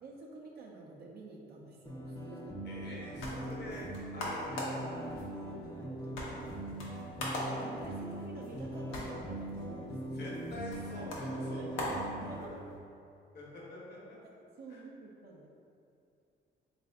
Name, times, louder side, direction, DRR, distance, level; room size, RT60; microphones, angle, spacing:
voice 1, 0.0-2.6 4.2-4.3 4.6-7.0 7.3-10.4 11.0-12.5 14.6-15.5, right 2 dB, 55° right, -2 dB, 0.5 m, -49 dB
sound 1, 1.9-12.5, right 1 dB, 20° left, 0.7 m, -41 dB
voice 2, 2.6-4.8 7.8-8.0 10.1-12.4 13.3-14.2 14.7-14.8, left 2 dB, 55° left, -5 dB, 1.0 m, -47 dB
sound 2, 2.8-12.8, left 1 dB, 85° left, 0.8 m, -42 dB
3.4 x 2.5 x 3.4 m, 2.6 s
cardioid pair, 90°, 20 cm